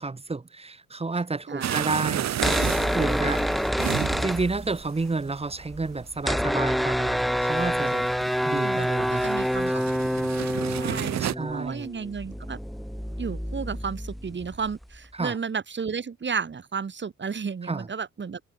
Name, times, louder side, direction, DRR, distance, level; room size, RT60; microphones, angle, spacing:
voice 1, 0.0-2.7 2.9-3.4 4.2-8.1 8.4-9.3 9.7-9.9 11.2-11.9 15.1-15.4 17.7-17.9, right 3 dB, 20° right, 2.1 m, -30 dB
voice 2, 1.5-1.9 8.5-9.8 10.7-12.6 13.2-18.4, right 5 dB, 40° right, 4.1 m, -33 dB
sound 1, 1.6-11.3, right 11 dB, 65° right, 1.4 m, -33 dB
sound 2, 2.3-5.0 5.3-5.4 5.5-15.0, equal, ahead, 1.0 m, -27 dB
cardioid pair, 90°, 30 cm